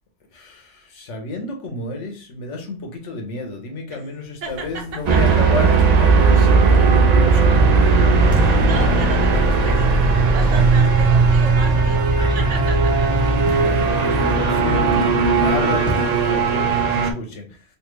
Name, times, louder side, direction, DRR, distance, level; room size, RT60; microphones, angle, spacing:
voice 1, 0.3-7.9 13.5-17.6, left 2 dB, 80° left, 1.2 m, -30 dB
sound 1, 4.4-16.3, right 2 dB, 5° right, 0.8 m, -35 dB
voice 2, 4.4-4.8 5.1-5.2 8.3-12.0 12.3-13.1, right 5 dB, 80° right, 1.2 m, -34 dB
sound 2, 5.1-17.1, right 4 dB, 55° right, 0.5 m, -16 dB
3.3 x 2.7 x 3.1 m
omnidirectional pair, 1.2 m